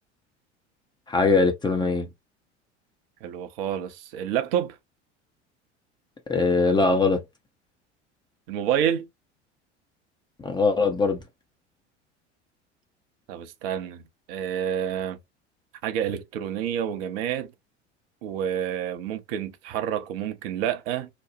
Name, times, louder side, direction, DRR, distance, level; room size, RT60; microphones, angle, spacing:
voice 1, 1.1-2.1 6.3-7.2 10.4-11.2, left 3 dB, 15° left, 0.5 m, -21 dB
voice 2, 3.2-4.8 8.5-9.1 13.3-14.0 14.3-15.2 15.8-17.5 18.2-21.1, right 9 dB, 55° right, 0.6 m, -28 dB
2.9 x 2.0 x 2.5 m
figure-of-eight pair, 75°, 35 cm